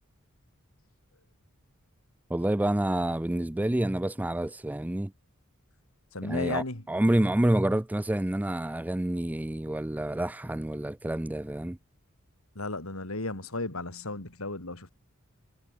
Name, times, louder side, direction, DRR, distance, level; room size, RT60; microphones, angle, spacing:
voice 1, 2.3-5.1 6.2-11.8, right 1 dB, 5° right, 0.4 m, -28 dB
voice 2, 6.1-6.8 12.6-14.9, left 2 dB, 75° left, 3.8 m, -34 dB
head